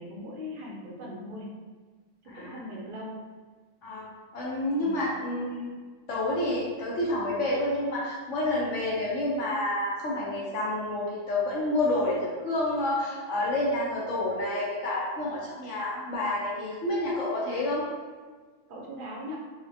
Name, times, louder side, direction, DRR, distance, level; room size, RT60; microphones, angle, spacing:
voice 1, 0.0-1.5 2.2-3.2 4.8-5.1 18.7-19.4, left 1 dB, 55° right, -2 dB, 0.6 m, -39 dB
voice 2, 2.3-2.6 3.8-4.0 4.3-5.7 6.1-17.8, left 1 dB, 70° left, -6 dB, 1.0 m, -29 dB
3.9 x 2.1 x 2.7 m, 1.4 s
omnidirectional pair, 1.3 m